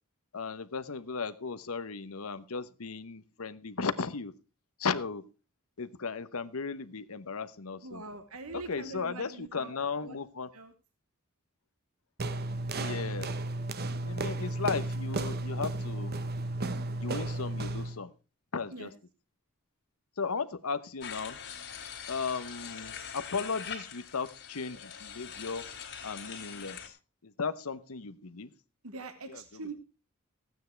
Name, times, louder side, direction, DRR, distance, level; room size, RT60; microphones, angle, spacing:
voice 1, 0.3-4.3 4.8-5.3 5.8-8.0 8.5-10.5 12.8-13.3 13.8-16.1 17.0-18.1 18.5-18.9 20.2-21.4 22.1-25.7 26.0-27.0 27.2-28.5 29.3-29.7, left 5 dB, 80° left, 13 dB, 0.9 m, -36 dB
voice 2, 7.8-9.7 10.0-10.2 10.5-10.7 18.7-18.9 28.8-29.7, right 3 dB, 75° right, 9 dB, 1.3 m, -43 dB
sound 1, 12.2-18.0, right 2 dB, 45° right, 0.9 m, -33 dB
sound 2, 21.0-26.9, left 7 dB, 55° left, 2.9 m, -43 dB
15.0 x 9.2 x 4.5 m, 0.31 s
head